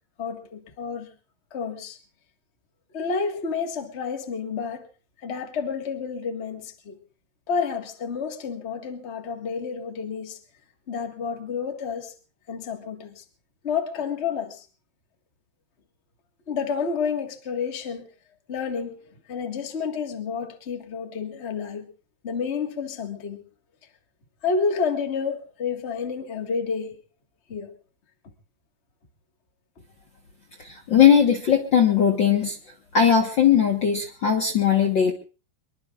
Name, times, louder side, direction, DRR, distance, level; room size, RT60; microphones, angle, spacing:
voice 1, 0.2-1.1 1.5-2.0 2.9-4.9 5.2-7.0 7.5-10.4 10.9-12.1 12.5-13.2 13.6-14.6 16.5-18.1 18.5-19.0 19.3-21.9 22.2-23.4 24.4-27.0 27.5-27.7, left 5 dB, 30° left, 4 dB, 1.5 m, -30 dB
voice 2, 30.6-32.6 32.9-35.1, left 8 dB, 50° left, 3 dB, 1.6 m, -19 dB
24.5 x 23.0 x 2.5 m, 0.36 s
omnidirectional pair, 3.5 m